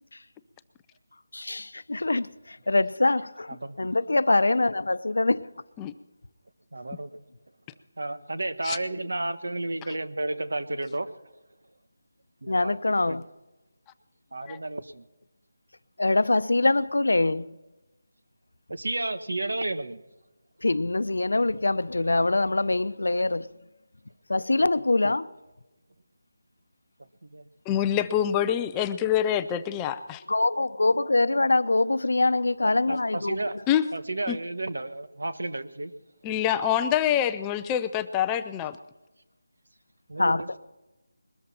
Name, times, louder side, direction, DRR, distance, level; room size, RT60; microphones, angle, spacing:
voice 1, 1.3-3.5 3.8-5.5 12.5-13.2 16.0-17.6 20.6-23.5 24.3-25.3 30.3-33.5 40.2-40.4, left 2 dB, 80° left, 0.8 m, -24 dB
voice 2, 6.7-7.1 8.0-11.2 12.4-13.2 14.3-15.0 18.7-20.0 27.0-27.5 32.6-33.6 33.9-35.9 40.1-40.5, right 2 dB, 80° right, 1.4 m, -32 dB
voice 3, 27.7-30.2 33.7-33.8 34.3-34.4 36.2-38.8, left 10 dB, 10° left, 0.4 m, -25 dB
21.5 x 13.5 x 4.4 m
figure-of-eight pair, 175°, 0 cm